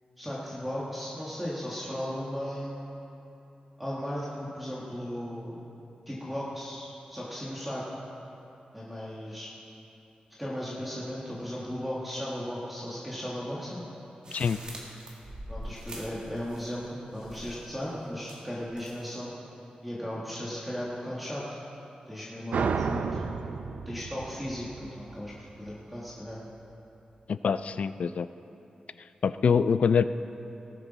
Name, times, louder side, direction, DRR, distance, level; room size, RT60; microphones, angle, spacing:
voice 1, 0.2-2.8 3.8-5.7 6.1-8.0 8.7-9.5 10.4-13.8 15.5-19.3 19.8-21.5 22.1-23.2 23.8-26.4, equal, 5° right, -7 dB, 1.4 m, -36 dB
sound 1, 14.2-16.9 17.1-17.7 18.2-19.1, right 1 dB, 40° right, 1.9 m, -44 dB
sound 2, 22.5-25.8, right 5 dB, 75° right, 0.5 m, -32 dB
voice 2, 27.3-28.3 29.2-30.0, left 6 dB, 55° left, 13 dB, 0.3 m, -24 dB
18.5 x 10.0 x 4.0 m, 2.9 s
wide cardioid pair, 175°, 3 cm